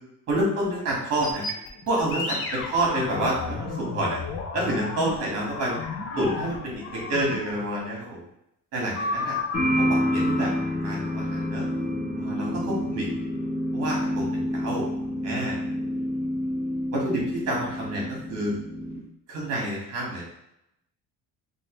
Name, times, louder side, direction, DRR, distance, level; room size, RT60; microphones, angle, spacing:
voice 1, 0.3-1.4 1.9-4.2 4.5-5.7 6.2-8.2 8.7-9.4 9.8-11.6 12.2-13.1 13.7-14.8 15.2-15.6 16.9-18.5 19.3-20.2, right 1 dB, 50° right, -3 dB, 1.5 m, -28 dB
sound 1, 1.2-7.7 8.9-11.5, left 4 dB, 45° left, 0.5 m, -33 dB
sound 2, 9.5-19.0, equal, 20° left, 0.9 m, -28 dB
3.1 x 2.8 x 3.0 m, 0.79 s
cardioid pair, 150°, 32 cm